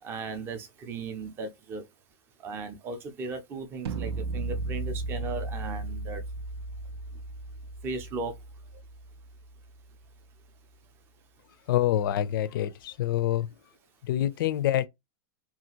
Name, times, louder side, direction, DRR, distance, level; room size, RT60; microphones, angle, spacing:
voice 1, 0.0-1.9 2.4-6.2 7.1-7.2 7.8-8.4, right 4 dB, 15° right, 0.5 m, -37 dB
sound 1, 3.9-9.8, right 3 dB, 85° right, 0.5 m, -35 dB
voice 2, 11.7-13.5 14.1-14.8, left 12 dB, 60° left, 0.4 m, -26 dB
2.7 x 2.4 x 2.8 m
supercardioid pair, 170°, 13 cm